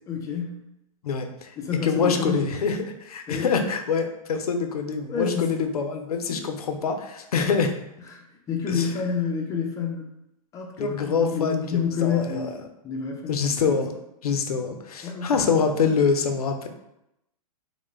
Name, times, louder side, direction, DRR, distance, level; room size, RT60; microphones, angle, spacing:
voice 1, 0.1-0.6 1.6-2.6 3.3-3.6 5.1-5.6 6.3-6.4 8.1-10.0 10.5-12.5 12.8-13.8 15.0-15.8, left 6 dB, 15° left, 1 dB, 0.4 m, -29 dB
voice 2, 1.0-1.6 1.8-7.7 8.7-8.9 10.8-12.5 13.3-13.9 14.2-16.7, left 5 dB, 80° left, 5 dB, 0.4 m, -25 dB
2.3 x 2.0 x 3.0 m, 0.85 s
hypercardioid pair, 115°, 19 cm